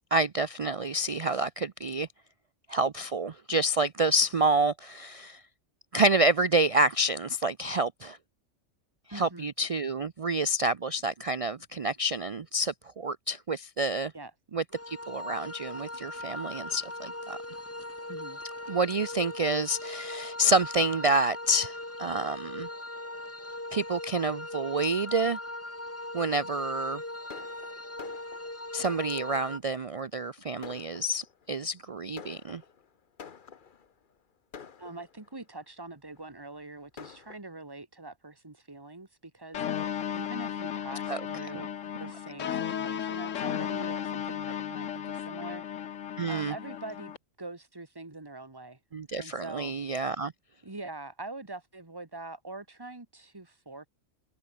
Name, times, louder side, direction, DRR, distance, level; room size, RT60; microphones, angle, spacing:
voice 1, 0.1-2.1 2.7-5.4 5.9-8.2 9.1-14.1 14.5-17.4 18.7-22.7 23.7-25.4 26.1-27.0 28.7-32.6 41.1-41.2 41.5-41.6 46.2-46.5 48.9-50.3, right 2 dB, 45° right, 0.4 m, -28 dB
voice 2, 9.1-9.5 14.1-14.3 18.1-18.4 34.8-39.6 40.1-41.7 42.0-45.6 46.3-47.1 47.4-48.8 49.1-49.7 50.6-53.9, right 2 dB, 20° right, 1.9 m, -43 dB
sound 1, 14.7-29.6, left 1 dB, 10° left, 1.3 m, -40 dB
Fireworks, 27.3-29.6 30.2-30.3 30.6-31.5 32.2-33.9 34.5-35.4 36.1-36.2 36.6-36.7 37.0-37.4, left 6 dB, 45° left, 1.1 m, -48 dB
sound 2, 39.5-47.2, left 9 dB, 80° left, 1.3 m, -34 dB
omnidirectional pair, 1.3 m